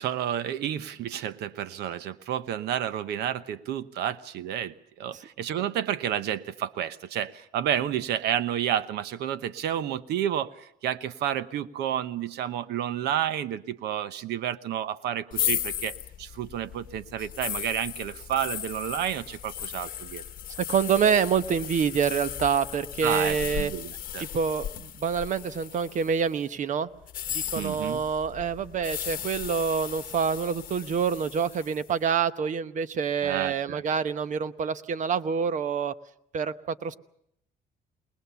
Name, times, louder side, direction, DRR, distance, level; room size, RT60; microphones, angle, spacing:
voice 1, 0.0-20.2 23.0-24.2 27.6-28.0 33.2-33.8, right 10 dB, 75° right, 13 dB, 1.0 m, -30 dB
sound 1, 15.3-26.3 27.0-31.9, left 10 dB, 55° left, 1.0 m, -36 dB
voice 2, 20.6-23.7 24.2-26.9 27.3-35.9 36.3-36.9, right 7 dB, 50° right, 13 dB, 1.0 m, -27 dB
21.5 x 20.5 x 7.0 m, 0.73 s
cardioid pair, 110°, 17 cm